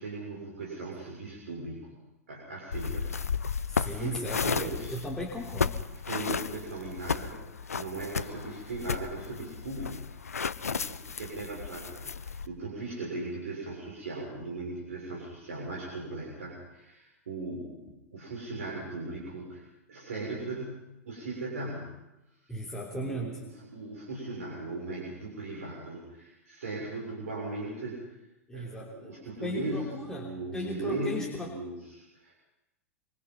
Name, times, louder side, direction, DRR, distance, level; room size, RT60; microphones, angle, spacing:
voice 1, 0.0-1.9 2.3-3.1 3.4-3.5 3.8-5.0 6.1-7.4 7.7-22.0 22.7-28.2 28.5-32.3, right 2 dB, 65° right, -3 dB, 7.0 m, -38 dB
sound 1, 2.7-12.5, left 6 dB, 75° left, 0.8 m, -34 dB
voice 2, 3.7-5.8 22.5-23.4 28.5-29.2 29.4-31.5, equal, 5° left, -2 dB, 3.6 m, -37 dB
26.5 x 24.5 x 5.7 m, 0.94 s
figure-of-eight pair, 95°, 8 cm